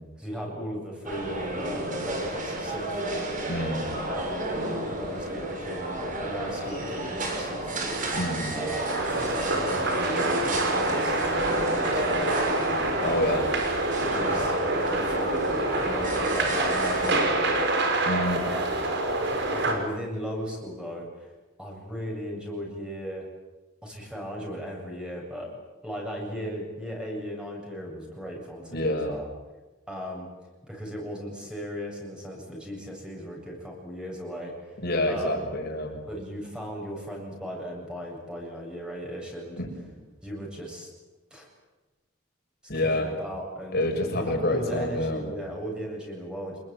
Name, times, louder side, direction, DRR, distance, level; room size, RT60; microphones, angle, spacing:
voice 1, 0.2-3.3 3.9-4.5 4.8-8.0 8.5-9.1 9.5-11.2 11.6-13.3 13.9-14.5 14.9-18.1 18.4-18.7 19.5-21.3 21.6-23.3 23.8-25.5 25.8-29.3 29.9-30.3 30.7-34.8 35.1-35.5 36.1-39.6 40.2-40.9 41.3-41.5 42.7-43.8 44.2-46.6, equal, 5° right, -1 dB, 7.8 m, -37 dB
sound 1, 1.0-17.2, right 1 dB, 40° right, 6.9 m, -32 dB
voice 2, 3.5-3.9 8.2-8.5 13.0-13.4 18.1-18.5 28.7-29.2 34.8-35.9 39.6-39.9 42.7-43.1 43.7-45.2, left 1 dB, 50° left, 3 dB, 6.3 m, -27 dB
sound 2, 8.9-19.7, right 2 dB, 60° right, 5.4 m, -26 dB
28.0 x 21.5 x 9.2 m, 1.1 s
head